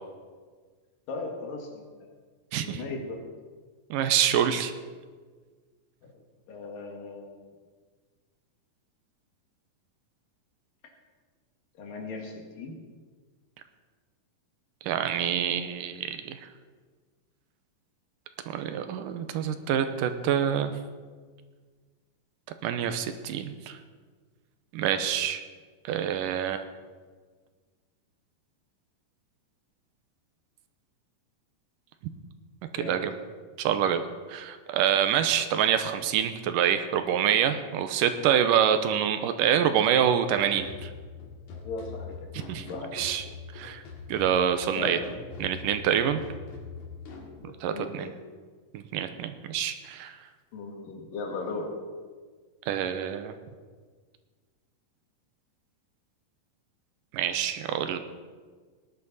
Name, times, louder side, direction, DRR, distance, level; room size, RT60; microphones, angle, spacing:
voice 1, 1.1-2.1 2.6-3.2 6.0-6.1 6.5-7.5 11.8-12.8 32.7-33.1 41.5-42.1 42.7-43.1 44.7-45.0 47.4-48.1 50.5-51.7, left 3 dB, 85° left, 1 dB, 3.6 m, -37 dB
voice 2, 3.9-4.7 14.8-16.5 18.5-20.7 22.6-23.8 24.7-25.4 25.8-26.6 32.7-33.1 33.6-34.0 34.3-40.9 42.5-42.7 42.9-43.3 43.5-43.8 44.1-45.0 45.4-46.2 47.6-48.1 48.7-50.2 52.7-53.3 57.1-58.0, right 9 dB, 80° right, 9 dB, 2.4 m, -26 dB
sound 1, 40.3-47.3, left 4 dB, 65° left, 3.0 m, -43 dB
18.0 x 11.0 x 4.1 m, 1.5 s
omnidirectional pair, 3.9 m